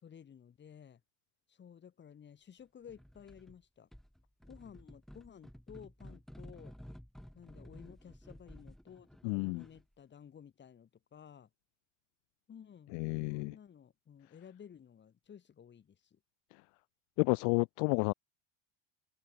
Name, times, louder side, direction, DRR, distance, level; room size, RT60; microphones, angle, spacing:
voice 1, 0.0-1.0 1.5-3.9 4.5-6.7 7.3-11.5 12.5-16.2, left 8 dB, 30° left, 3.5 m, -54 dB
sound 1, 2.9-3.6 3.9-9.9, equal, ahead, 3.8 m, -53 dB
voice 2, 9.2-9.6 12.9-13.5 17.2-18.1, left 40 dB or more, 60° left, 0.5 m, -31 dB
supercardioid pair, 100°, 36 cm